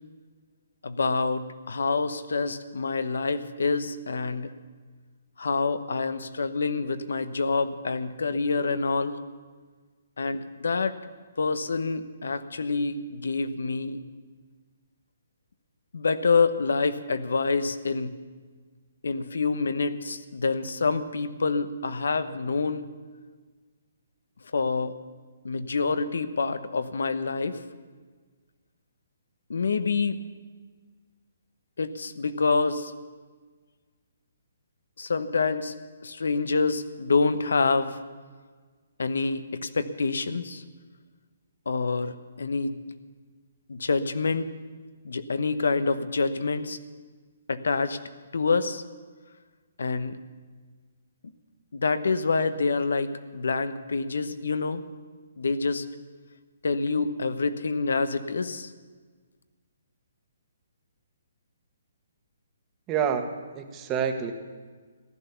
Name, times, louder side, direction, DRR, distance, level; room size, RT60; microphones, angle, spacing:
voice 1, 0.8-4.5 5.4-9.2 10.2-11.0 11.4-14.0 15.9-18.1 19.0-22.8 24.5-24.9 25.4-27.6 29.5-30.2 31.8-32.9 35.0-35.7 36.0-38.0 39.0-40.6 41.7-42.8 43.7-44.5 45.0-46.8 47.5-48.0 48.3-48.8 49.8-50.2 51.7-54.8 55.4-55.9 56.6-58.7, left 4 dB, 80° left, 12 dB, 1.0 m, -27 dB
voice 2, 62.9-63.3 63.5-64.3, right 7 dB, 20° right, 5 dB, 1.3 m, -27 dB
15.0 x 11.5 x 6.9 m, 1.5 s
hypercardioid pair, 155°, 0 cm